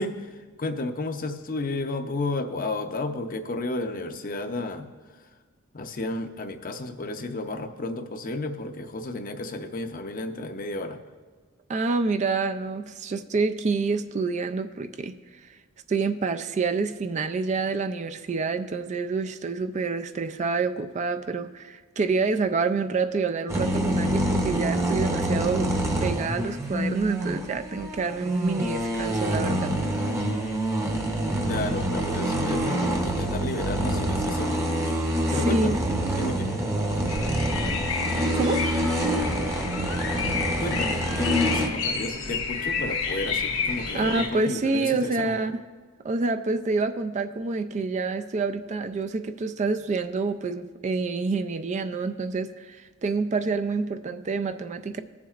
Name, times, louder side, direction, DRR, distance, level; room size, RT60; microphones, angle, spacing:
voice 1, 0.0-4.9 5.7-11.0 31.4-34.8 35.3-35.8 36.2-36.5 40.6-45.4, left 2 dB, 45° left, 0.6 m, -32 dB
voice 2, 11.7-15.2 15.9-25.7 26.0-29.8 35.3-35.8 38.3-38.6 43.9-45.5 46.0-55.0, right 4 dB, 35° right, 0.3 m, -27 dB
sound 1, 23.5-41.7, right 1 dB, 15° right, 0.8 m, -26 dB
sound 2, 37.1-44.3, left 5 dB, 85° left, 1.9 m, -30 dB
19.5 x 7.2 x 2.4 m
head